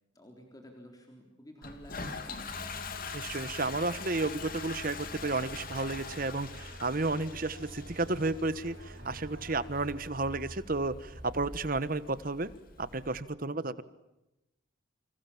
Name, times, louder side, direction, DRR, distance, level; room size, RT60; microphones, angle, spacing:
voice 1, 0.1-2.7, equal, 20° left, 2 dB, 3.8 m, -51 dB
Toilet flush, 1.6-13.2, left 4 dB, 45° left, 2.9 m, -44 dB
sound 1, 2.5-11.7, equal, 25° right, 7.7 m, -49 dB
voice 2, 3.1-12.5 12.8-13.8, right 3 dB, 45° right, 15 dB, 1.2 m, -32 dB
sound 2, 4.4-11.9, right 1 dB, 65° right, 4.0 m, -57 dB
29.0 x 27.0 x 7.3 m, 0.95 s
head